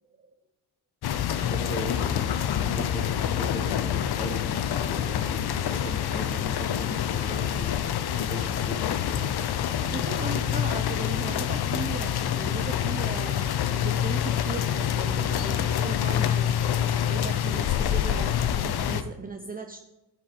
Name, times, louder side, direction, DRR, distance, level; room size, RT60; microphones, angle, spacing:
sound 1, 1.0-19.0, left 10 dB, 50° left, 0.8 m, -27 dB
voice 1, 1.5-9.3, equal, 20° left, 0 dB, 2.6 m, -38 dB
voice 2, 9.8-19.8, right 4 dB, 20° right, 4 dB, 0.7 m, -37 dB
11.5 x 6.0 x 4.3 m, 0.99 s
supercardioid pair, 60°, 48 cm